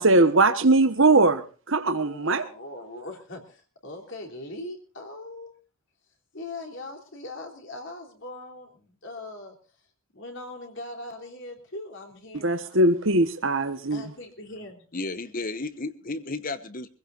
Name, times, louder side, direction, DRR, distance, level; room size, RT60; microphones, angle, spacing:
voice 1, 0.0-1.4 1.7-2.4 12.4-14.0, right 2 dB, 60° right, 1.3 m, -20 dB
voice 2, 1.9-5.5 6.3-9.6 10.1-12.8 13.9-14.8, left 2 dB, 55° left, 3.4 m, -40 dB
voice 3, 14.9-16.9, left 3 dB, 40° left, 1.1 m, -33 dB
25.0 x 16.0 x 2.6 m
head